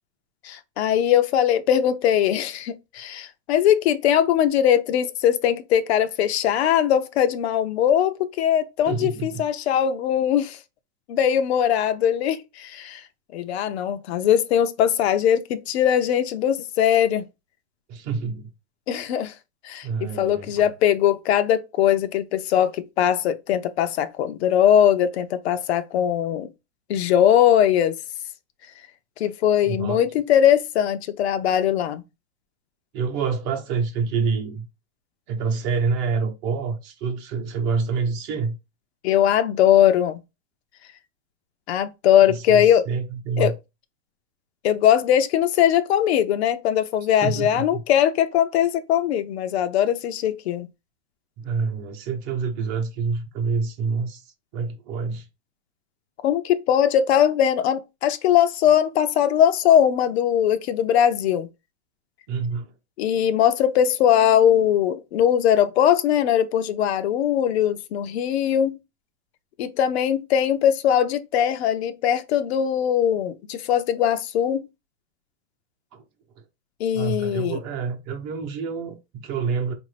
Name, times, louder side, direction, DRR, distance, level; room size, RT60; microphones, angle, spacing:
voice 1, 0.4-10.6 11.1-13.0 13.3-17.2 18.9-19.3 19.6-26.5 26.9-28.0 29.2-32.0 39.0-40.2 41.7-42.9 43.4-43.5 44.6-50.7 56.2-61.5 63.0-68.8 69.6-74.6 76.8-77.6, left 10 dB, 60° left, 0.5 m, -20 dB
voice 2, 8.9-9.4 17.9-18.5 19.8-20.7 29.6-30.1 32.9-34.7 35.3-38.6 42.2-43.5 47.2-47.8 51.4-54.2 54.5-55.3 62.3-62.7 75.9-76.0 76.9-79.7, right 5 dB, 35° right, 0.9 m, -27 dB
4.8 x 2.6 x 3.2 m
supercardioid pair, 150°, 37 cm